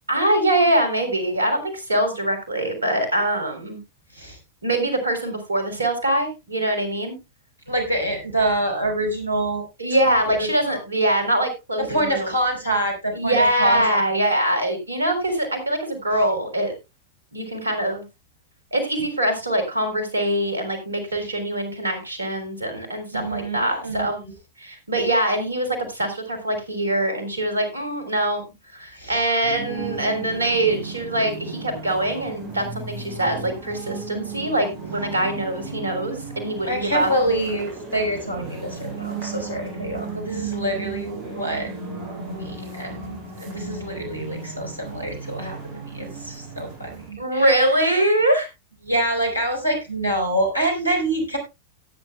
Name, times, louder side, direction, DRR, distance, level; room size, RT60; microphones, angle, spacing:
voice 1, 0.1-3.8 4.6-7.2 9.8-12.3 13.1-16.7 17.3-18.0 18.7-24.2 24.6-28.4 28.7-37.1 47.2-48.5, right 1 dB, 75° right, 7 dB, 3.7 m, -23 dB
voice 2, 7.7-9.6 10.1-11.0 11.8-13.8 23.1-24.3 29.0-29.2 36.6-41.7 42.2-47.8 48.8-51.4, right 1 dB, 85° left, 5 dB, 4.4 m, -26 dB
sound 1, 29.4-47.1, right 4 dB, 45° right, 5.4 m, -35 dB
18.0 x 9.5 x 2.2 m, 0.24 s
figure-of-eight pair, 90°, 0 cm